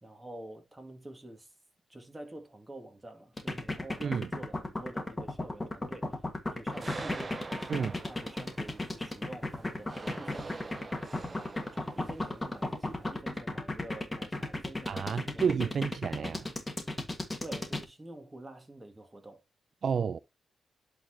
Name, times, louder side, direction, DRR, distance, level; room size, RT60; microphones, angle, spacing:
voice 1, 0.0-1.5 1.9-6.2 6.5-10.8 11.3-15.7 17.4-19.4, right 1 dB, 15° right, 2.2 m, -48 dB
sound 1, 3.4-17.8, left 2 dB, 15° left, 1.5 m, -34 dB
sound 2, 6.7-13.2, right 3 dB, 30° right, 0.8 m, -45 dB
voice 2, 14.9-16.5 19.8-20.2, right 6 dB, 55° right, 0.4 m, -30 dB
11.0 x 4.1 x 2.8 m
cardioid pair, 105°, 0 cm